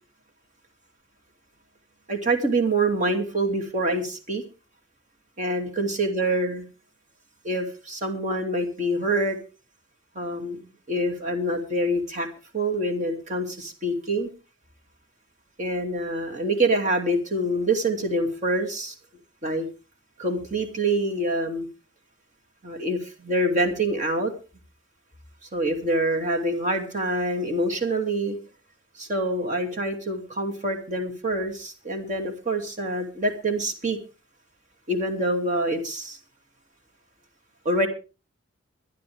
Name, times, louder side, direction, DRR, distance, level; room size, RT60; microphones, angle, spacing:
voice 1, 2.1-4.4 5.4-6.6 7.4-9.4 10.1-10.6 10.9-12.3 12.5-14.3 15.6-18.9 19.4-19.7 20.2-21.7 22.6-24.3 25.5-28.4 29.0-34.0 34.9-36.2 37.6-37.9, right 1 dB, 35° right, 2 dB, 2.6 m, -26 dB
23.5 x 10.5 x 3.5 m, 0.33 s
head